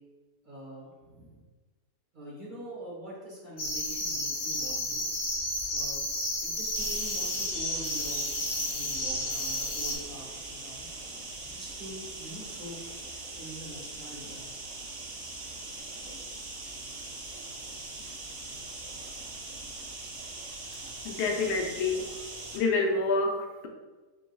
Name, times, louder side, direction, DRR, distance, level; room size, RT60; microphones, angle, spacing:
voice 1, 0.4-1.4 2.1-5.0 5.7-6.0 6.4-10.9 11.4-13.0 13.3-14.4, right 1 dB, 35° right, -6 dB, 1.2 m, -44 dB
sound 1, 3.6-9.9, left 1 dB, 70° left, 1.6 m, -32 dB
sound 2, 6.7-22.6, right 2 dB, 50° right, 0.8 m, -41 dB
voice 2, 21.0-22.1 22.5-23.7, left 3 dB, 90° left, 3 dB, 1.2 m, -27 dB
5.1 x 3.6 x 2.3 m, 1.3 s
omnidirectional pair, 1.6 m